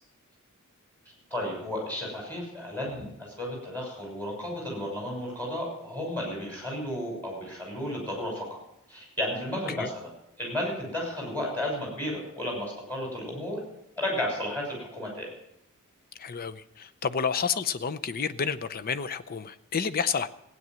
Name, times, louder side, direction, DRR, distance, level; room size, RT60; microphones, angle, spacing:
voice 1, 1.3-8.6 8.9-10.1 10.4-13.6 14.0-15.3, left 1 dB, 10° left, -2 dB, 6.3 m, -33 dB
voice 2, 16.2-20.3, left 6 dB, 45° left, 13 dB, 0.6 m, -30 dB
16.0 x 9.5 x 7.6 m, 0.81 s
head